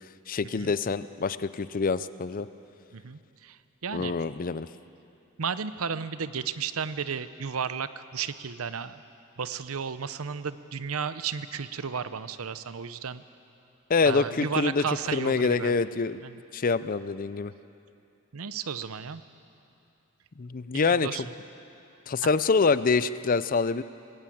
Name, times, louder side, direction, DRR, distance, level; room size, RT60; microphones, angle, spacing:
voice 1, 0.3-2.5 3.9-4.7 13.9-14.8 15.1-16.2 16.5-17.5 20.4-21.3 22.1-23.8, left 4 dB, 40° left, 15 dB, 0.5 m, -26 dB
voice 2, 2.9-4.1 5.4-9.0 9.4-13.2 14.1-15.7 16.2-16.4 18.3-19.2 20.7-21.2 22.2-22.3, right 6 dB, 85° right, 13 dB, 0.7 m, -33 dB
20.0 x 17.0 x 8.6 m, 2.7 s
head